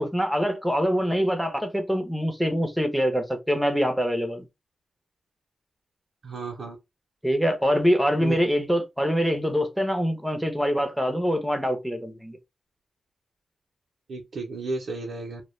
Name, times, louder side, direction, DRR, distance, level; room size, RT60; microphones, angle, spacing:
voice 1, 0.0-4.5 7.2-12.4, equal, ahead, 0.6 m, -24 dB
voice 2, 6.2-6.8 8.2-8.4 14.1-15.4, right 3 dB, 75° right, 0.6 m, -33 dB
2.2 x 2.1 x 3.0 m
wide cardioid pair, 110°, 0 cm